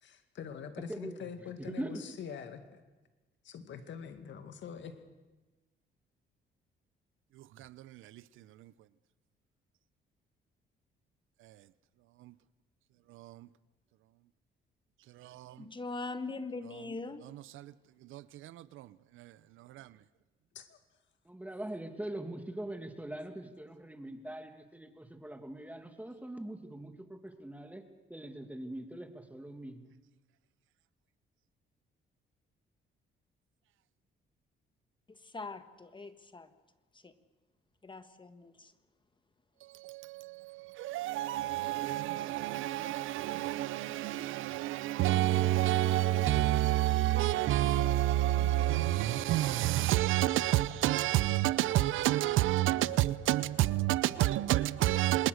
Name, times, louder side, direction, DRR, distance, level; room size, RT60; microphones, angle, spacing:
voice 1, 0.0-2.8 3.4-5.0 20.5-20.8, left 7 dB, 70° left, 2.2 m, -44 dB
voice 2, 1.7-2.0 21.3-27.8 28.1-29.9, right 1 dB, 5° right, 2.4 m, -42 dB
voice 3, 7.6-8.2 8.6-8.7 11.4-11.5 12.2-12.3 13.1-13.5 15.2-15.6 18.1-18.9 19.1-19.3 19.6-19.9 39.7-55.3, right 14 dB, 85° right, 0.7 m, -29 dB
voice 4, 15.6-17.3 35.1-36.5 36.9-37.1 37.8-38.7, left 3 dB, 25° left, 1.4 m, -42 dB
26.5 x 20.5 x 6.5 m
cardioid pair, 90°, 20 cm